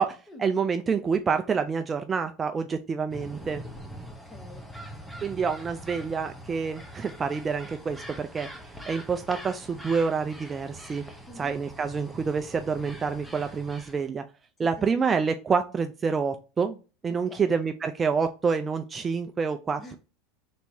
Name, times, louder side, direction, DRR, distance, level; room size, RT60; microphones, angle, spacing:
voice 1, 0.0-3.6 5.2-8.5 8.9-11.0 11.4-14.2 14.6-16.8 17.0-19.9, right 5 dB, 20° right, 0.4 m, -27 dB
sound 1, 3.1-14.1, equal, 5° left, 0.9 m, -43 dB
voice 2, 4.1-4.7 11.3-11.6 14.6-15.1 17.1-17.6 19.8-20.0, left 2 dB, 20° left, 1.5 m, -47 dB
4.4 x 4.0 x 2.7 m
supercardioid pair, 125°, 0 cm